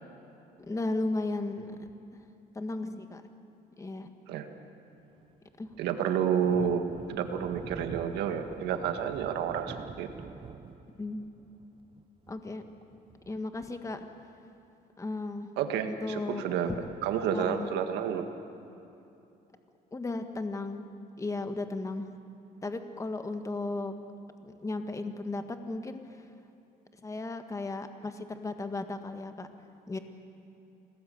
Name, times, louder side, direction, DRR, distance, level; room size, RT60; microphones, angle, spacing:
voice 1, 0.6-1.7 2.5-3.2 3.8-4.1 5.6-5.7 11.0-11.3 12.3-12.6 13.3-14.1 15.0-15.5 16.0-16.4 17.3-17.8 19.9-20.8 21.2-22.1 22.6-23.9 24.4-26.0 27.0-29.5 29.9-30.0, left 2 dB, 20° left, 7 dB, 1.6 m, -35 dB
Thunder, 5.2-14.3, right 5 dB, 30° right, 1.0 m, -47 dB
voice 2, 5.8-10.1 15.6-16.8 17.0-18.3, right 8 dB, 85° right, 6 dB, 1.9 m, -30 dB
27.0 x 19.0 x 7.9 m, 2.8 s
cardioid pair, 110°, 17 cm